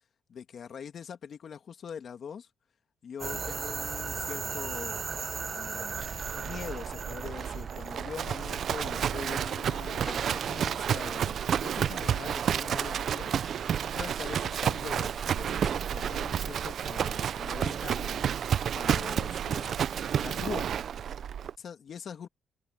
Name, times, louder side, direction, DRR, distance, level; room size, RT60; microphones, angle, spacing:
voice 1, 0.3-2.5 3.0-5.1 5.5-18.2 18.7-20.8 21.6-22.3, left 7 dB, 55° left, 2.5 m, -43 dB
sound 1, 3.2-9.2, right 5 dB, 40° right, 1.0 m, -37 dB
Livestock farm animals working animals, 6.0-21.5, right 8 dB, 60° right, 0.5 m, -31 dB
sound 2, 9.7-17.3, equal, ahead, 3.9 m, -50 dB
cardioid pair, 90°, 0 cm